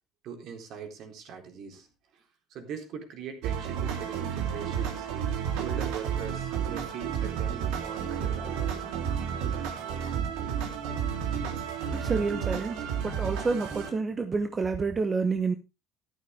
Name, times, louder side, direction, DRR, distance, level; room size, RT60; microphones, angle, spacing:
voice 1, 0.2-1.9 2.1-2.2 2.5-5.1 5.6-8.7 9.2-9.4, right 7 dB, 55° right, 3.8 m, -41 dB
sound 1, 3.4-13.9, right 8 dB, 85° right, 3.3 m, -31 dB
voice 2, 11.9-15.5, right 4 dB, 20° right, 1.0 m, -29 dB
13.0 x 11.5 x 3.5 m
cardioid pair, 145°, 0 cm